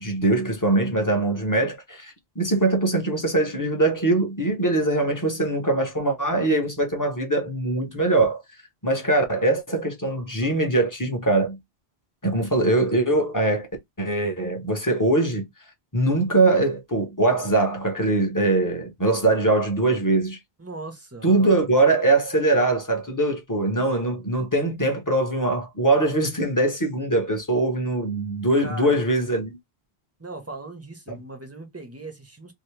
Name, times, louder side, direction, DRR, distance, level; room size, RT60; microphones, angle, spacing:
voice 1, 0.0-8.4 8.8-11.6 12.2-13.7 14.0-15.5 15.9-20.4 21.2-29.6 31.1-31.2, right 2 dB, 20° left, 0.8 m, -22 dB
voice 2, 20.6-21.6 28.6-29.0 30.2-32.5, right 2 dB, 15° right, 0.8 m, -38 dB
2.8 x 2.7 x 3.2 m
omnidirectional pair, 1.1 m